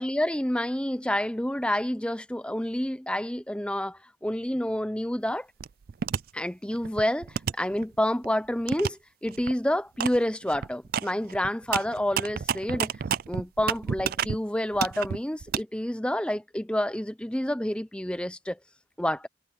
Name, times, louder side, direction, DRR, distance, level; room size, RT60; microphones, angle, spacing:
voice 1, 0.0-5.5 6.3-12.9 13.3-18.6 19.0-19.3, left 1 dB, 5° left, 0.6 m, -29 dB
sound 1, 5.6-6.2 6.7-8.3 8.7-8.9 9.3-9.5 10.0-10.2 10.4-14.4 14.7-15.6, right 7 dB, 45° right, 0.3 m, -30 dB
head